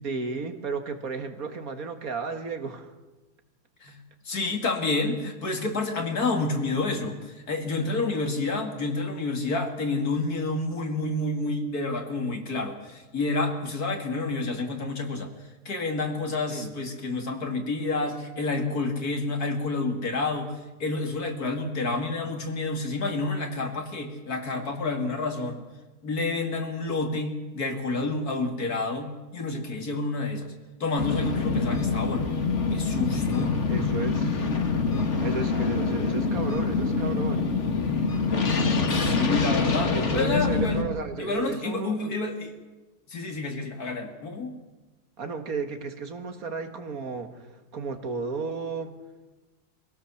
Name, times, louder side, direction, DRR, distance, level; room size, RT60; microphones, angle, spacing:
voice 1, 0.0-2.9 16.5-16.7 33.7-34.4 35.2-37.6 39.9-42.1 45.2-49.0, right 4 dB, 65° right, 6 dB, 2.1 m, -33 dB
voice 2, 4.3-15.3 15.7-25.6 26.0-30.5 30.8-32.3 32.7-33.6 38.9-40.8 41.2-42.5 43.1-44.5, left 3 dB, 75° left, 4 dB, 2.8 m, -29 dB
sound 1, 31.0-40.8, left 4 dB, 50° left, 1.9 m, -25 dB
24.0 x 17.0 x 7.1 m, 1.2 s
omnidirectional pair, 1.6 m